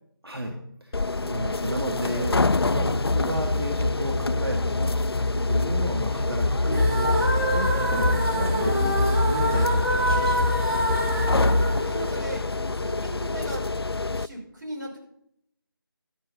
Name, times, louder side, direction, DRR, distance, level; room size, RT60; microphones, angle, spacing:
voice 1, 0.2-0.5 0.8-0.9 1.2-2.4 2.7-10.9, right 1 dB, 85° right, 0 dB, 2.6 m, -33 dB
sound 1, 0.9-14.3, left 3 dB, 90° left, 0.4 m, -29 dB
sound 2, 2.2-11.8, left 2 dB, 65° left, 1.1 m, -26 dB
sound 3, 6.7-12.8, equal, 5° right, 0.9 m, -27 dB
voice 2, 8.2-9.1 11.1-13.7 14.1-15.0, right 1 dB, 50° right, -2 dB, 5.5 m, -38 dB
12.5 x 9.2 x 5.7 m, 0.75 s
figure-of-eight pair, 165°, 13 cm